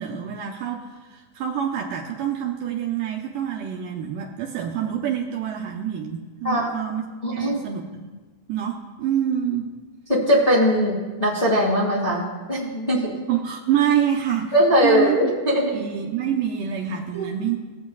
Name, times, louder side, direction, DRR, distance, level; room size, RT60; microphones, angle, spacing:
voice 1, 0.0-8.0 8.5-9.7 13.3-14.5 14.8-15.3 15.6-17.6, right 9 dB, 80° right, 0 dB, 1.9 m, -26 dB
voice 2, 7.2-7.6 10.1-13.0 14.5-15.7 17.1-17.3, equal, 30° left, -6 dB, 0.8 m, -20 dB
21.5 x 7.5 x 2.3 m, 1.3 s
omnidirectional pair, 4.7 m